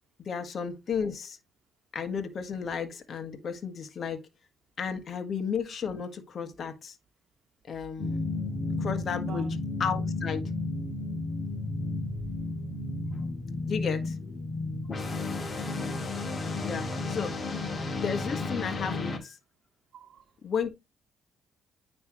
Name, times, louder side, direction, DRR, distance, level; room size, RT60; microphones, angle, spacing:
voice 1, 0.2-1.4 1.9-4.2 4.8-7.0 7.6-8.2 8.8-9.5 9.8-10.5 13.6-14.1 16.6-17.3 17.9-19.4 20.4-20.7, left 6 dB, 55° left, 1.5 m, -33 dB
sound 1, 8.0-19.2, left 3 dB, 35° left, 1.8 m, -33 dB
voice 2, 9.1-9.6 12.1-12.2 15.2-15.9 19.9-20.3, right 7 dB, 55° right, 1.1 m, -49 dB
9.6 x 3.4 x 2.9 m
cardioid pair, 90°, 0 cm